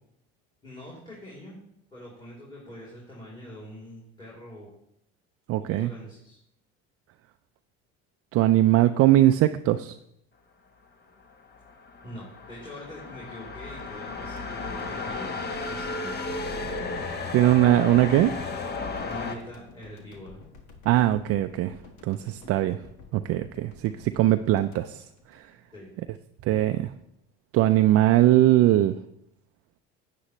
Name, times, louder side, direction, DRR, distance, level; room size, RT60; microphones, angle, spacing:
voice 1, 0.6-1.6 1.9-4.7 5.6-6.4 12.0-15.4 15.7-16.2 19.0-20.4 25.7-25.9, left 1 dB, 15° left, -6 dB, 3.0 m, -43 dB
voice 2, 5.5-5.9 8.3-10.0 17.3-18.3 20.9-21.8 22.0-22.8 23.1-25.0 25.3-25.5 26.4-26.9 27.5-29.0, right 14 dB, 50° right, 9 dB, 0.4 m, -21 dB
sound 1, 11.4-19.3, left 3 dB, 30° left, 1.1 m, -34 dB
sound 2, 13.8-26.0 26.2-26.4, left 4 dB, 65° left, 1.7 m, -51 dB
9.8 x 8.5 x 3.1 m, 0.79 s
supercardioid pair, 100°, 31 cm